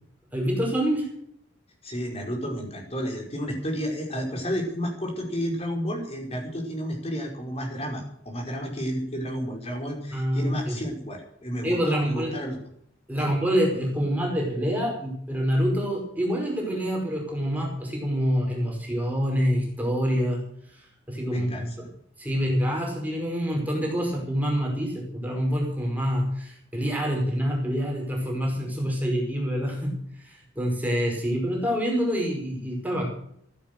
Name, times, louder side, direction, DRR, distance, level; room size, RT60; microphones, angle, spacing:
voice 1, 0.3-1.1 10.1-10.8 11.6-12.3 13.1-20.4 20.7-21.9 22.2-33.0, equal, 10° right, -1 dB, 5.2 m, -26 dB
voice 2, 1.8-12.6 13.2-13.3 21.3-21.9 22.3-22.4, equal, 35° left, 2 dB, 5.2 m, -31 dB
15.0 x 12.0 x 6.8 m, 0.67 s
head